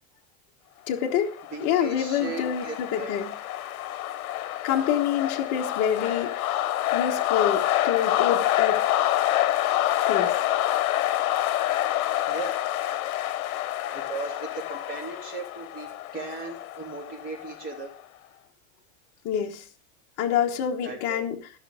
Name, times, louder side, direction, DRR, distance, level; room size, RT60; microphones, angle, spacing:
voice 1, 0.9-1.3 1.6-3.3 4.6-6.5 6.9-8.8 10.1-10.4 19.2-19.6 20.2-21.4, left 9 dB, 40° left, 1 dB, 1.3 m, -26 dB
sound 1, 1.2-17.9, left 14 dB, 75° left, 1.0 m, -27 dB
voice 2, 1.5-3.2 12.3-12.6 13.9-17.9 20.8-21.2, right 3 dB, 20° right, -1 dB, 3.5 m, -37 dB
14.0 x 6.1 x 4.9 m, 0.40 s
supercardioid pair, 165°, 43 cm